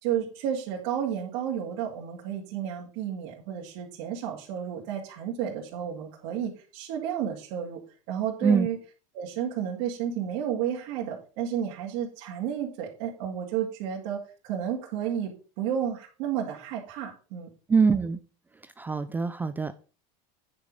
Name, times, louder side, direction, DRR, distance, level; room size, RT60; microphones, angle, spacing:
voice 1, 0.0-7.8 8.1-8.8 9.1-17.5, right 9 dB, 65° right, -3 dB, 2.3 m, -32 dB
voice 2, 17.7-18.2 18.8-19.8, right 5 dB, 10° right, 12 dB, 0.3 m, -24 dB
9.5 x 5.1 x 5.4 m, 0.36 s
supercardioid pair, 150°, 17 cm